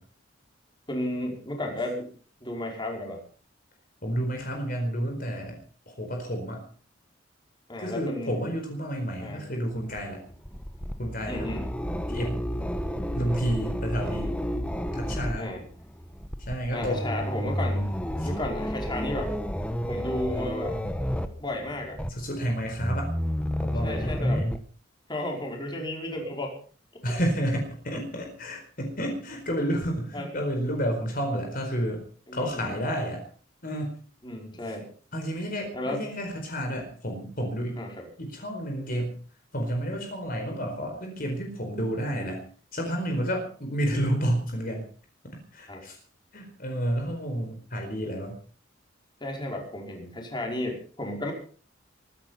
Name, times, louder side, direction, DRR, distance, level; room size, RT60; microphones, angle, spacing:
voice 1, 0.9-2.1 2.4-3.2 7.7-8.5 9.2-9.4 11.3-11.7 15.4-15.6 16.7-18.0 18.2-19.3 19.8-20.8 21.4-22.0 23.8-24.4 25.1-26.5 30.1-30.3 32.3-32.8 34.2-34.9 35.7-36.0 37.8-38.1 45.7-45.8 49.2-51.3, left 1 dB, 25° left, 1 dB, 5.1 m, -33 dB
voice 2, 4.0-5.6 5.9-6.6 7.8-10.2 11.0-11.5 12.1-12.4 13.1-14.3 14.9-15.5 16.4-17.2 18.2-18.3 22.1-23.1 23.6-24.5 27.0-32.0 32.3-33.2 33.6-33.9 35.1-37.8 38.2-39.2 39.5-42.4 42.7-44.9 45.5-46.0 46.3-48.4, equal, 45° left, 3 dB, 4.6 m, -30 dB
sound 1, 9.7-24.6, equal, 5° left, 1.2 m, -31 dB
23.0 x 10.5 x 5.8 m, 0.43 s
head